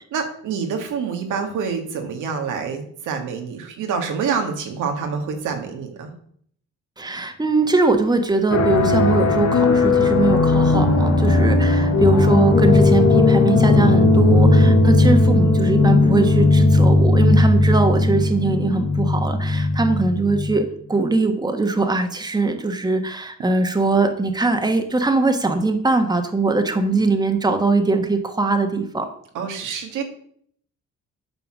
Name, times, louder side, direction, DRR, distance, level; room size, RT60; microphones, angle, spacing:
voice 1, 0.1-6.1 14.6-14.8 29.3-30.0, right 6 dB, 85° right, 4 dB, 1.9 m, -27 dB
voice 2, 7.0-29.1, right 3 dB, 15° right, 6 dB, 1.4 m, -21 dB
sound 1, 8.5-20.6, left 3 dB, 65° left, 2.3 m, -16 dB
9.0 x 5.8 x 6.3 m, 0.63 s
cardioid pair, 90°, 30 cm